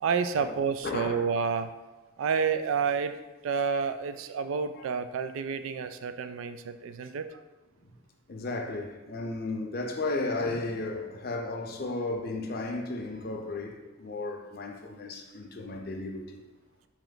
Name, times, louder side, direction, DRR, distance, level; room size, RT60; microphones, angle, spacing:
voice 1, 0.0-1.7 2.2-7.4 8.5-8.6, right 6 dB, 80° right, 0.3 m, -30 dB
voice 2, 0.8-1.1 8.3-16.4, left 2 dB, 50° left, 0.5 m, -34 dB
4.3 x 3.0 x 3.9 m
head